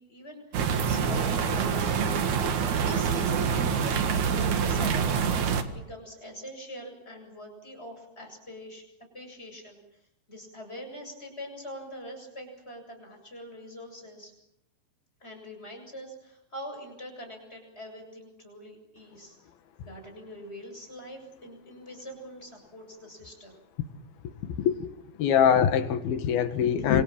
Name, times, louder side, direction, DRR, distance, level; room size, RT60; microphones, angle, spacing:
voice 1, 0.0-2.3 2.8-5.4 5.7-8.8 9.1-10.0 10.3-14.3 15.2-19.4 19.8-23.6, equal, 15° left, 3 dB, 7.7 m, -43 dB
sound 1, 0.5-5.6, right 6 dB, 55° right, 2.9 m, -26 dB
voice 2, 25.2-27.0, left 8 dB, 75° left, 9 dB, 3.5 m, -23 dB
27.5 x 26.5 x 7.6 m, 0.81 s
omnidirectional pair, 4.4 m